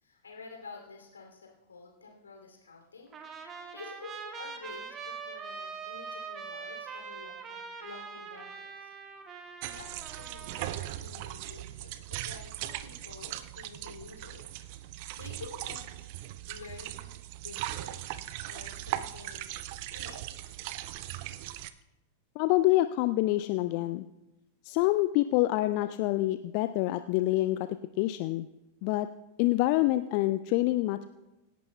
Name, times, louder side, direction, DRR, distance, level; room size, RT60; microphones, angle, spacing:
voice 1, 0.0-8.9 9.4-14.4 14.8-16.1 16.5-17.0 17.4-18.0 18.5-19.6 19.9-20.2, left 4 dB, 75° left, 1 dB, 2.7 m, -49 dB
Trumpet, 3.1-10.8, right 5 dB, 25° right, 1.5 m, -43 dB
sound 1, 9.6-21.7, right 14 dB, 45° right, 0.5 m, -39 dB
voice 2, 22.4-24.1 24.6-27.7 28.0-28.5 28.8-29.1 29.4-31.1, left 17 dB, 45° left, 11 dB, 0.4 m, -26 dB
25.0 x 11.5 x 2.2 m, 1.0 s
figure-of-eight pair, 90°, 0 cm